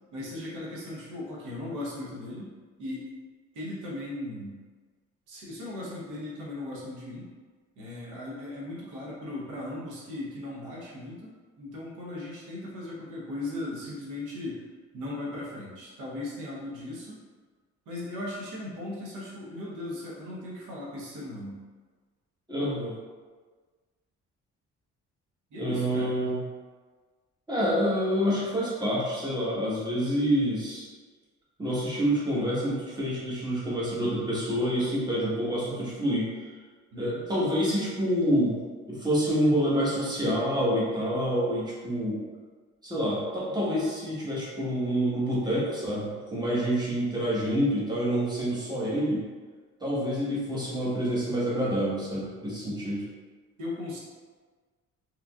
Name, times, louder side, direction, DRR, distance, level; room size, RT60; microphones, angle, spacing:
voice 1, 0.1-2.5 2.8-3.1 3.5-4.6 5.3-7.3 7.8-11.3 11.6-14.6 14.9-17.2 17.9-21.6 25.5-26.2 36.9-37.2 53.6-54.0, left 2 dB, 85° right, -5 dB, 1.0 m, -37 dB
voice 2, 22.5-22.9 25.6-26.4 27.5-30.9 31.6-36.3 37.0-38.6 38.9-42.2 42.8-49.2 49.8-53.0, equal, 15° right, -7 dB, 1.2 m, -27 dB
3.6 x 3.1 x 2.4 m, 1.4 s
cardioid pair, 90°, 30 cm